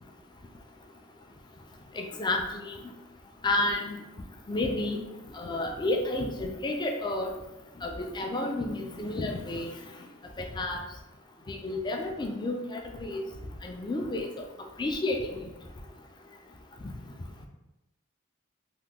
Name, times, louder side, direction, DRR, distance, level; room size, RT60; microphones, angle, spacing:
voice 1, 1.9-2.8 3.4-4.0 4.5-5.0 5.3-7.3 7.8-9.7 10.4-10.8 11.5-13.3 13.6-14.3 14.8-15.4, left 2 dB, 20° left, 3 dB, 0.3 m, -31 dB
2.8 x 2.2 x 3.5 m, 0.97 s
head